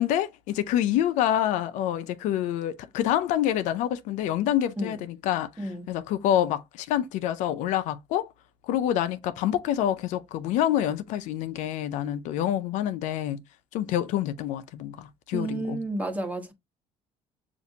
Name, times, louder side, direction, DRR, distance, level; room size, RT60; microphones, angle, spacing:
voice 1, 0.0-8.3 8.7-13.4 13.7-15.8, left 11 dB, 75° left, 0.5 m, -27 dB
voice 2, 5.6-5.9 15.3-16.5, right 2 dB, 10° right, 1.1 m, -31 dB
6.9 x 2.5 x 2.7 m
cardioid pair, 105°, 13 cm